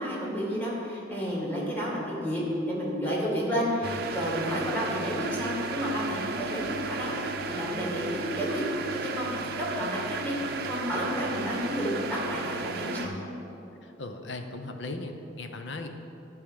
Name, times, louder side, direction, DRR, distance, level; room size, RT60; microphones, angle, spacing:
voice 1, 0.0-2.4 2.7-8.6 8.9-9.3 9.6-13.1, equal, 10° left, -4 dB, 2.2 m, -31 dB
sound 1, 3.8-13.1, right 3 dB, 50° right, 0.6 m, -34 dB
voice 2, 13.8-15.9, left 2 dB, 65° left, 6 dB, 0.8 m, -37 dB
12.0 x 4.8 x 8.2 m, 3.0 s
head